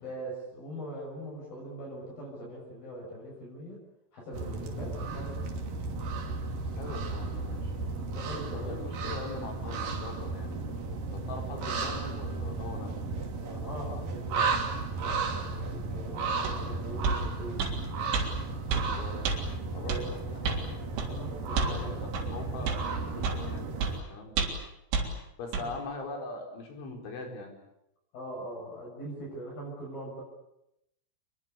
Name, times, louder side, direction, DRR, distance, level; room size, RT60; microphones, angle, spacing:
voice 1, 0.0-3.8 4.1-5.4 7.9-8.8 11.5-11.8 13.4-14.5 14.9-17.6 19.8-20.1 20.9-21.9 25.6-25.7 28.1-30.2, right 1 dB, 45° left, -3 dB, 8.6 m, -42 dB
sound 1, 4.3-24.0, right 3 dB, 50° right, 4.0 m, -34 dB
voice 2, 6.8-7.7 8.5-13.0 18.7-19.3 19.7-20.6 21.5-24.5 25.4-27.5, left 3 dB, 70° left, 3 dB, 7.1 m, -42 dB
sound 2, 16.4-16.6 17.0-17.2 17.6-17.8 18.1-18.3 18.7-18.9 19.2-19.4 19.9-20.0 20.4-20.6 21.0-21.1 21.6-21.8 22.1-22.3 22.7-22.8 23.2-23.4 23.8-23.9 24.4-24.6 24.9-25.1 25.5-25.7, right 5 dB, 75° right, 5.9 m, -29 dB
27.0 x 22.0 x 8.5 m, 0.86 s
omnidirectional pair, 5.6 m